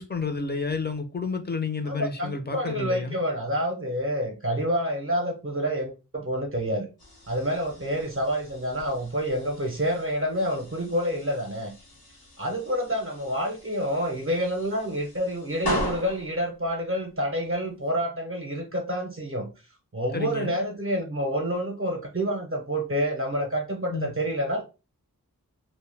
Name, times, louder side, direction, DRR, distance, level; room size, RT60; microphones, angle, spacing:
voice 1, 0.0-3.1 20.1-20.5 23.9-24.1, left 4 dB, 30° left, 0.5 m, -30 dB
voice 2, 1.8-6.9 7.3-11.7 12.4-19.5 19.9-24.6, equal, 40° right, 0.6 m, -28 dB
sound 1, 7.0-17.9, left 1 dB, 85° left, 0.9 m, -39 dB
2.1 x 2.1 x 3.2 m
wide cardioid pair, 40°, 35 cm